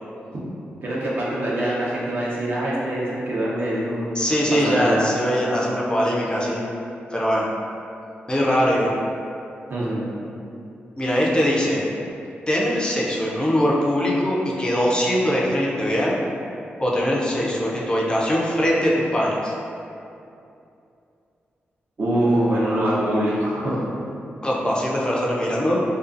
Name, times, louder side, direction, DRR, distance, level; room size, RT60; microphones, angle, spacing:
voice 1, 0.8-4.1 4.6-5.0 9.7-10.0 22.0-23.8, right 1 dB, 55° right, -7 dB, 0.7 m, -23 dB
voice 2, 4.2-6.7 7.1-7.5 8.3-8.9 11.0-11.9 12.5-16.2 16.8-19.5 24.4-25.8, equal, 20° left, -4 dB, 0.4 m, -21 dB
2.5 x 2.3 x 2.4 m, 2.6 s
cardioid pair, 55°, 4 cm